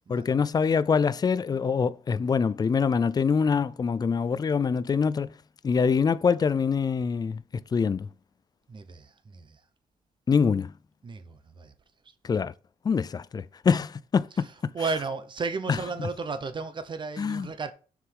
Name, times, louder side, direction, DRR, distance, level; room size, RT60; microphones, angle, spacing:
voice 1, 0.1-5.3 5.6-8.1 10.3-10.7 12.2-12.5 12.8-14.7 17.2-17.5, left 6 dB, 25° left, 0.4 m, -25 dB
voice 2, 8.7-9.6 11.0-11.7 12.0-12.1 14.3-17.7, right 4 dB, 30° right, 0.8 m, -34 dB
6.5 x 4.9 x 5.4 m
wide cardioid pair, 150°, 15 cm